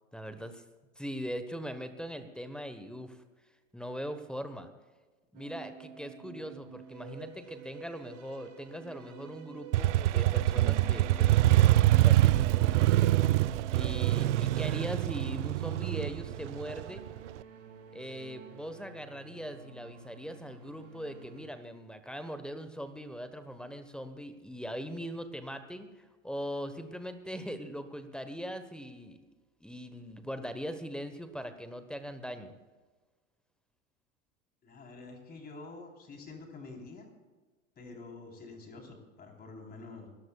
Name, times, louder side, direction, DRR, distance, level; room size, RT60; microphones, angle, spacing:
voice 1, 0.1-0.6 1.0-3.2 3.7-4.7 5.3-13.1 13.7-17.0 17.9-29.2 29.6-32.5, equal, ahead, 9 dB, 1.1 m, -41 dB
sound 1, 5.3-21.5, right 6 dB, 40° right, 3.4 m, -47 dB
Motorcycle, 9.7-17.4, right 15 dB, 60° right, 0.5 m, -25 dB
voice 2, 34.6-37.1 37.8-40.1, left 3 dB, 25° left, 2 dB, 3.8 m, -47 dB
28.0 x 14.0 x 2.4 m, 1.3 s
hypercardioid pair, 100°, 40 cm